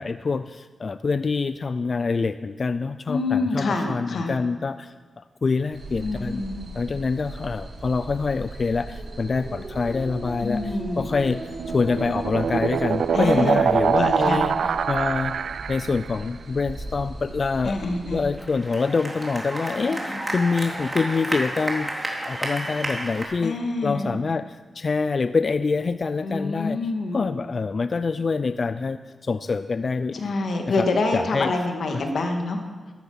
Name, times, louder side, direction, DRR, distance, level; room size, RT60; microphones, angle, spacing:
voice 1, 0.0-4.9 5.4-6.4 6.7-14.6 14.9-15.4 15.7-17.8 18.1-26.8 27.1-30.3 30.8-31.5 31.9-32.0, left 4 dB, 50° left, 12 dB, 0.4 m, -26 dB
voice 2, 3.1-4.3 6.0-6.7 10.4-11.1 13.1-13.6 13.9-14.4 17.6-18.2 19.8-20.2 23.4-24.1 26.2-27.4 30.1-32.6, left 3 dB, 70° left, 4 dB, 2.0 m, -26 dB
sound 1, 5.7-18.3, right 2 dB, 65° right, 4.1 m, -37 dB
sound 2, 11.3-16.1, right 7 dB, 85° right, 0.4 m, -24 dB
sound 3, 18.3-23.2, right 1 dB, 20° right, 3.3 m, -31 dB
14.0 x 13.5 x 5.8 m, 1.4 s
cardioid pair, 80°, 0 cm